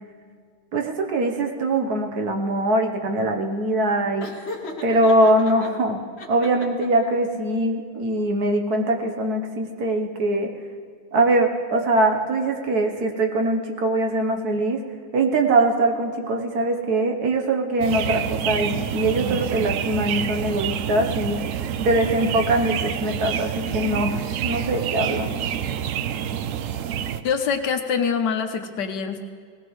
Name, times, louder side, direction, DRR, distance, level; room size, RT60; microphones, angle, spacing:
voice 1, 0.7-4.3 4.8-6.0 6.3-10.5 11.1-14.8 15.1-21.4 21.8-25.3, right 2 dB, 60° right, 3 dB, 1.5 m, -22 dB
Laughter, 4.2-5.7 6.2-7.1, left 2 dB, 40° left, 1.4 m, -36 dB
sound 1, 17.8-27.2, right 9 dB, 85° right, 0.7 m, -27 dB
voice 2, 27.2-29.2, left 6 dB, 70° left, 6 dB, 1.4 m, -24 dB
19.0 x 17.5 x 3.2 m, 2.1 s
omnidirectional pair, 2.0 m